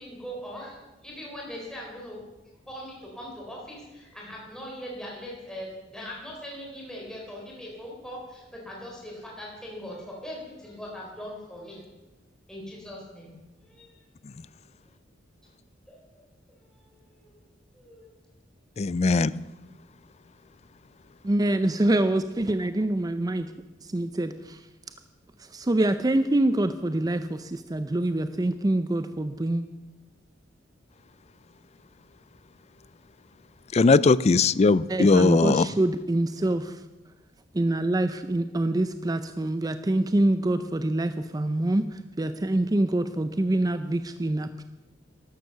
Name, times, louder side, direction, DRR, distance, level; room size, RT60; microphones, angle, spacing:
voice 1, 0.0-2.2 2.7-11.8 12.5-13.3 13.6-14.0 15.9-17.4 17.7-18.1, equal, 5° left, -3 dB, 3.8 m, -41 dB
voice 2, 18.8-19.3 33.7-35.7, left 4 dB, 35° left, 19 dB, 0.4 m, -19 dB
voice 3, 21.2-23.5 23.8-24.7 25.4-29.6 34.9-36.8 37.5-44.6, right 1 dB, 20° right, 10 dB, 0.5 m, -25 dB
12.5 x 12.0 x 6.8 m, 1.1 s
head